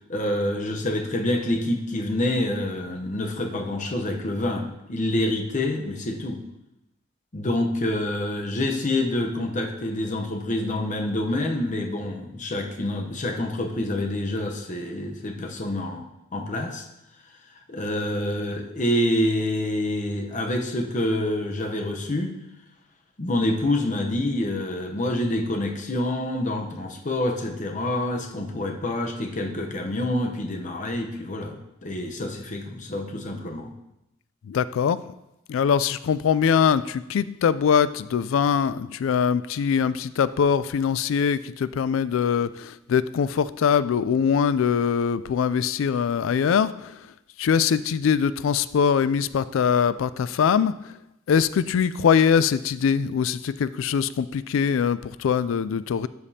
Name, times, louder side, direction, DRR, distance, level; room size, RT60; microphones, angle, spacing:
voice 1, 0.1-6.4 7.3-16.0 16.3-16.9 17.7-22.4 23.2-33.7, left 1 dB, 35° left, 3 dB, 0.8 m, -27 dB
voice 2, 34.5-35.0 35.5-46.9 47.4-50.7 51.3-56.1, left 7 dB, 70° left, 16 dB, 0.3 m, -22 dB
12.5 x 5.1 x 2.8 m, 0.89 s
head